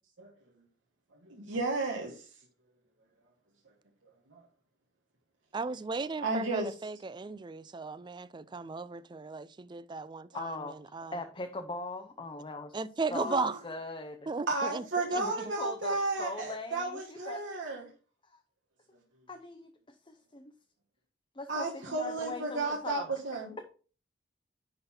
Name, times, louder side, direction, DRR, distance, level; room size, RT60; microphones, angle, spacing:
voice 1, 1.2-2.2 4.3-4.4 6.2-6.7 13.3-13.6 14.5-17.8 21.5-23.6, right 3 dB, 80° right, 1.4 m, -33 dB
voice 2, 5.5-10.5 10.9-11.1 12.7-13.6 14.3-14.8 15.2-15.3, right 4 dB, 25° right, 0.4 m, -36 dB
voice 3, 10.3-10.8 11.1-12.8 13.1-14.3 15.4-17.8 18.2-18.4 19.3-20.5 21.3-23.1, left 3 dB, 25° left, 0.7 m, -40 dB
10.5 x 3.9 x 4.3 m
head